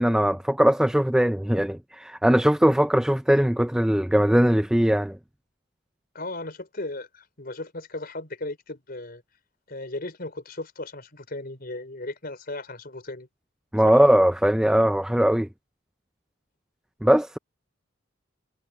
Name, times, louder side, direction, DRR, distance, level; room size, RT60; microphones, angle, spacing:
voice 1, 0.0-5.2 13.7-15.5 17.0-17.4, equal, 5° right, 0.3 m, -20 dB
voice 2, 6.1-9.2 9.7-13.3 13.8-14.0, left 2 dB, 50° left, 4.6 m, -36 dB
head